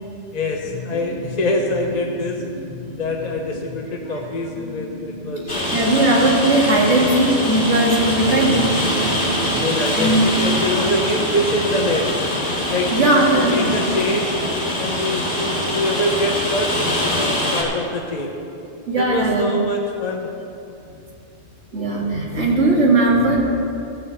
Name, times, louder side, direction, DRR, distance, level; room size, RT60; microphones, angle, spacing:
voice 1, 0.3-2.4 3.0-5.8 8.2-8.6 9.4-12.1 12.7-14.4 14.8-18.4 19.0-20.3, left 1 dB, 35° left, 1 dB, 0.9 m, -24 dB
sound 1, 0.6-16.2, left 1 dB, 20° left, 1.9 m, -36 dB
Rain, 5.5-17.6, left 1 dB, 55° left, 2.6 m, -23 dB
voice 2, 5.7-8.5 9.9-10.2 12.9-13.7 18.9-19.5 21.7-23.4, right 2 dB, 65° right, -2 dB, 2.2 m, -18 dB
Bass guitar, 8.4-12.7, right 5 dB, 90° right, 1.7 m, -32 dB
14.0 x 7.1 x 7.0 m, 2.7 s
omnidirectional pair, 1.3 m